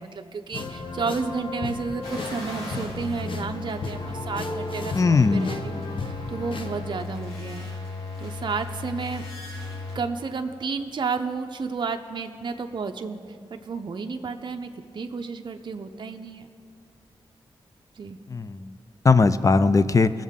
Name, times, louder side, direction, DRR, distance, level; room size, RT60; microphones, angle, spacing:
voice 1, 0.0-7.7 8.2-9.2 9.9-16.5 17.9-18.2, right 4 dB, 50° right, 5 dB, 0.6 m, -32 dB
sound 1, 0.5-6.8, left 3 dB, 60° left, 0.9 m, -35 dB
sound 2, 2.0-10.0, left 3 dB, 80° left, 3.0 m, -36 dB
voice 2, 4.9-5.5 18.3-18.7 19.0-20.1, left 4 dB, 35° left, 13 dB, 0.4 m, -19 dB
19.5 x 7.3 x 3.6 m, 2.3 s
cardioid pair, 80°, 10 cm